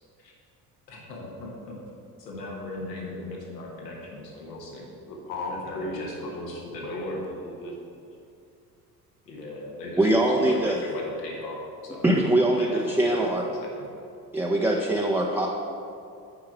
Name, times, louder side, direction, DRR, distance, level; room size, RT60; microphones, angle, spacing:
voice 1, 0.9-1.8 2.2-4.8 5.7-7.2 9.2-12.0 12.5-13.9, left 1 dB, 75° left, -2 dB, 1.4 m, -38 dB
voice 2, 5.0-8.0, left 1 dB, 40° left, 1 dB, 1.6 m, -36 dB
voice 3, 10.0-10.8 12.0-13.4 14.3-15.5, right 1 dB, 5° right, -1 dB, 0.5 m, -22 dB
9.0 x 4.8 x 4.7 m, 2.4 s
figure-of-eight pair, 55°, 50 cm